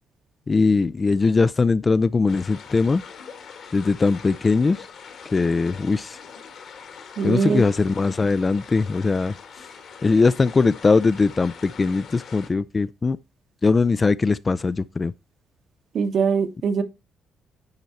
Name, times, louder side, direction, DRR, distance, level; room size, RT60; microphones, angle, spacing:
voice 1, 0.5-3.0 3.7-4.9 5.3-6.2 7.2-9.3 10.0-13.2 13.6-15.1, left 4 dB, 30° left, 0.3 m, -20 dB
sound 1, 2.3-12.5, left 6 dB, 65° left, 2.2 m, -43 dB
voice 2, 7.2-7.6 15.9-16.8, right 5 dB, 60° right, 1.1 m, -22 dB
10.5 x 4.5 x 4.1 m
cardioid pair, 90°, 0 cm